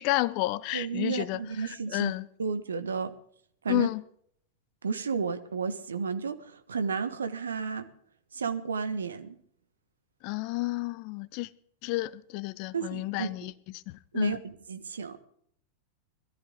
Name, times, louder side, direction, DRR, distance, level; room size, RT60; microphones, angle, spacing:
voice 1, 0.0-2.3 3.7-4.0 10.2-11.5 11.8-13.5 13.9-14.4, left 19 dB, 45° left, 0.7 m, -31 dB
voice 2, 0.7-2.1 2.4-3.1 3.6-3.9 4.8-7.9 8.3-9.4 12.7-13.5 14.1-15.2, right 5 dB, 70° right, 1.3 m, -32 dB
21.5 x 14.0 x 3.8 m
figure-of-eight pair, 90°, 0 cm